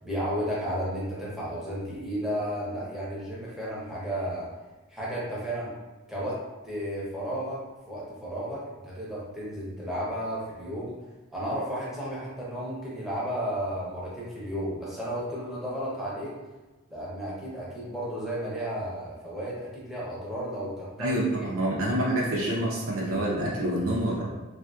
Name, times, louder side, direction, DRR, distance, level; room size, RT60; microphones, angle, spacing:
voice 1, 0.0-4.5 4.9-5.7 6.1-6.4 6.6-7.6 7.9-10.9 11.3-16.3 16.9-21.5, equal, ahead, -7 dB, 0.7 m, -33 dB
voice 2, 21.0-24.2, right 1 dB, 60° right, -5 dB, 0.6 m, -27 dB
3.5 x 2.5 x 2.3 m, 1.2 s
head